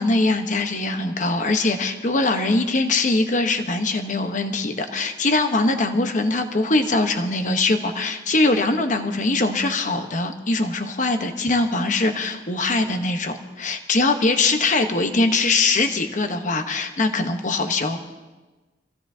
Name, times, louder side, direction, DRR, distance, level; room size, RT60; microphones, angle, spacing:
voice 1, 0.0-18.0, left 2 dB, 45° left, 6 dB, 1.1 m, -22 dB
25.0 x 16.0 x 2.8 m, 1.2 s
head